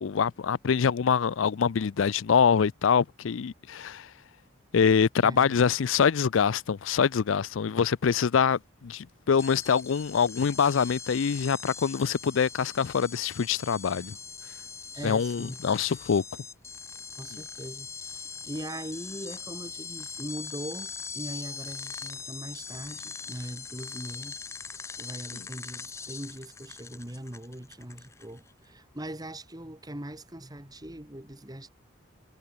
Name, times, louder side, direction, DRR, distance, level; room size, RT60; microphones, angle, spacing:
voice 1, 0.0-4.1 4.7-14.2 15.0-16.2, left 6 dB, 80° left, 0.5 m, -25 dB
voice 2, 5.2-5.6 14.9-15.6 17.2-24.4 24.7-31.7, right 1 dB, 20° right, 2.3 m, -40 dB
sound 1, 9.4-28.5, left 5 dB, 15° left, 0.4 m, -41 dB
head